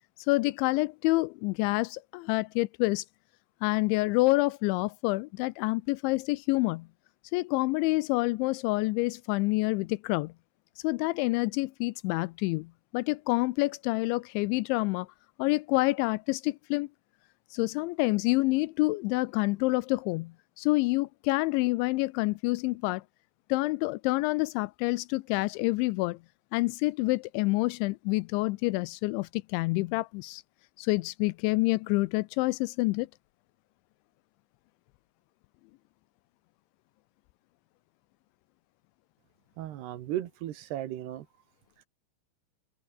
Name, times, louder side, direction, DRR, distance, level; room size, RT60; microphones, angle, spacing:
voice 1, 0.3-3.0 3.6-6.9 7.3-10.3 10.8-15.1 15.4-16.9 17.5-23.0 23.5-26.2 26.5-30.4 30.8-33.1, left 22 dB, 85° left, 2.9 m, -27 dB
voice 2, 39.6-41.3, right 12 dB, 70° right, 3.3 m, -35 dB
omnidirectional pair, 5.4 m